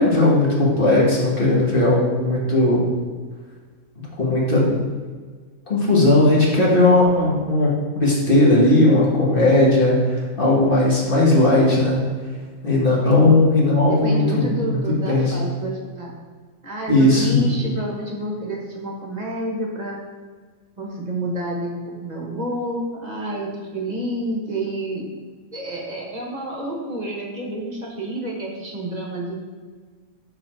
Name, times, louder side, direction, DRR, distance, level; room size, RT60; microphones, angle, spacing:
voice 1, 0.0-2.8 4.2-4.8 5.7-12.0 12.6-15.4 16.9-17.4, left 2 dB, 40° left, -5 dB, 1.5 m, -17 dB
voice 2, 13.9-16.1 16.6-20.0 20.8-25.1 25.5-29.4, right 1 dB, 30° right, -2 dB, 1.1 m, -29 dB
6.8 x 4.4 x 4.4 m, 1.5 s
omnidirectional pair, 1.5 m